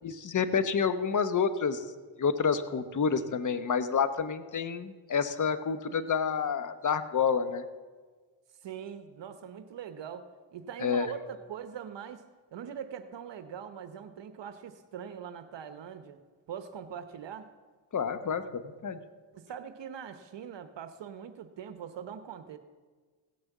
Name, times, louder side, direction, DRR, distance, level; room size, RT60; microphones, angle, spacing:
voice 1, 0.0-1.8 2.2-7.6 10.8-11.1 17.9-19.0, left 6 dB, 35° left, 12 dB, 1.0 m, -29 dB
voice 2, 8.6-12.2 12.5-16.2 16.5-17.5 19.3-22.6, right 8 dB, 60° right, 9 dB, 0.9 m, -42 dB
16.5 x 6.3 x 7.2 m, 1.5 s
supercardioid pair, 65°, 50 cm